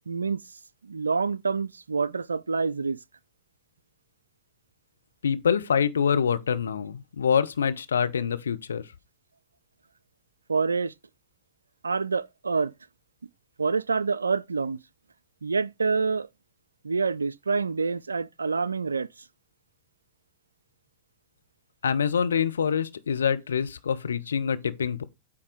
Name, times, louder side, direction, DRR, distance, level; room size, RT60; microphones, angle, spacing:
voice 1, 0.1-0.4 0.8-3.0 10.5-10.9 11.8-12.7 13.6-14.8 15.4-16.3 16.8-19.1, right 4 dB, 75° right, 0.3 m, -27 dB
voice 2, 5.2-8.8 21.8-25.0, left 7 dB, 70° left, 0.7 m, -25 dB
8.6 x 3.7 x 4.9 m
figure-of-eight pair, 90°, 0 cm